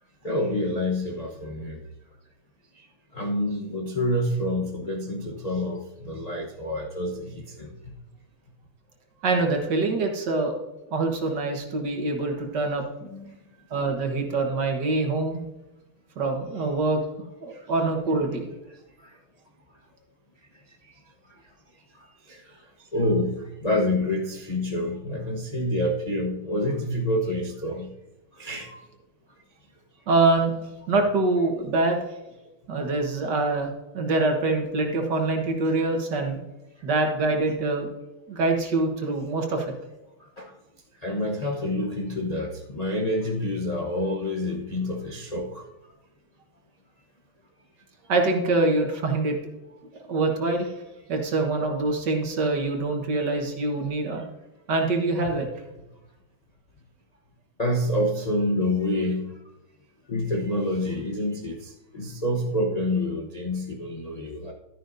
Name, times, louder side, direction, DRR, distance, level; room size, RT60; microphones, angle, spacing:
voice 1, 0.2-1.8 2.7-2.9 3.1-7.9 13.0-13.5 13.8-13.9 17.5-17.7 19.0-19.2 20.8-20.9 21.9-22.7 22.9-27.9 28.3-28.7 40.4-40.5 41.0-45.6 57.6-59.4 60.1-64.5, left 1 dB, 35° left, -1 dB, 0.6 m, -28 dB
voice 2, 9.2-10.6 10.9-12.8 13.7-15.4 16.2-17.0 17.4-18.5 28.7-28.8 30.1-30.5 30.9-32.0 32.7-36.4 36.8-37.9 38.3-39.7 48.1-49.4 50.1-50.7 51.1-54.3 54.7-55.5, right 3 dB, 55° right, 3 dB, 1.9 m, -24 dB
12.0 x 10.0 x 2.6 m, 1.0 s
omnidirectional pair, 2.3 m